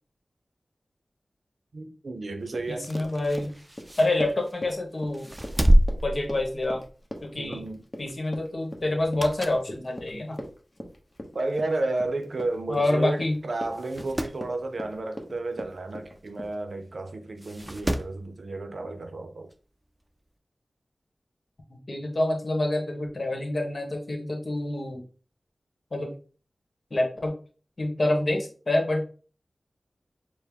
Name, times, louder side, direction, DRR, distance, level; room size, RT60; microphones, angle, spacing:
voice 1, 1.7-2.9 7.4-7.8 11.3-19.5, right 2 dB, 70° right, 0.5 m, -32 dB
Run, 2.5-16.5, left 1 dB, 35° left, 0.9 m, -41 dB
voice 2, 2.7-3.5 4.0-5.3 6.0-6.8 7.2-7.6 8.0-10.4 12.7-13.4 21.9-25.0 25.9-26.1 26.9-27.3 27.8-29.0, left 2 dB, 55° left, 1.2 m, -27 dB
sound 1, 2.7-4.7 5.1-7.0 7.4-7.6 8.9-9.7 10.2-10.3 11.2-11.3 11.5-11.6 11.8-11.9 12.7-12.9 13.2-13.3 13.7-14.4 16.3-16.4 17.4-18.2 19.5-19.6, equal, 20° right, 0.4 m, -27 dB
4.5 x 2.1 x 3.5 m
cardioid pair, 45°, 0 cm